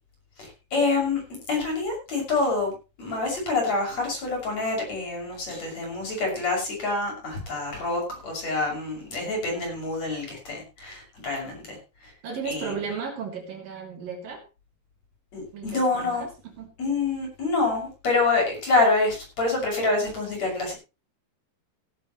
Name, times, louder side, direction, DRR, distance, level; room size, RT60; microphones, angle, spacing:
voice 1, 0.4-1.2 1.5-12.1 12.5-12.7 15.3-16.2 16.8-20.7, left 3 dB, 40° left, 1 dB, 7.7 m, -27 dB
voice 2, 12.2-14.4 15.5-16.7, right 5 dB, 60° right, 2 dB, 4.5 m, -35 dB
17.5 x 12.0 x 3.2 m, 0.29 s
omnidirectional pair, 4.5 m